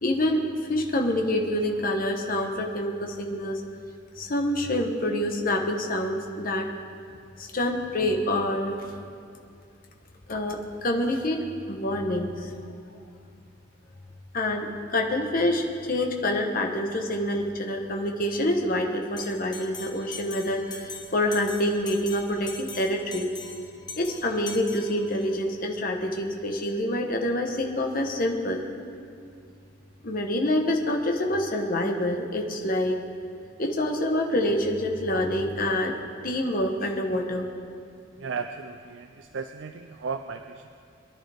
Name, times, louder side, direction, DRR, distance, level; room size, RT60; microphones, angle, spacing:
voice 1, 0.0-3.6 4.2-6.7 7.4-9.0 10.3-12.5 14.3-23.3 24.0-28.6 30.0-33.0 33.6-35.9 36.2-37.5, left 1 dB, 50° left, 2 dB, 1.1 m, -27 dB
Bell, 19.2-25.4, left 4 dB, 20° left, 1.0 m, -42 dB
voice 2, 38.2-40.7, right 5 dB, 70° right, 7 dB, 0.5 m, -35 dB
22.5 x 11.0 x 3.5 m, 2.3 s
head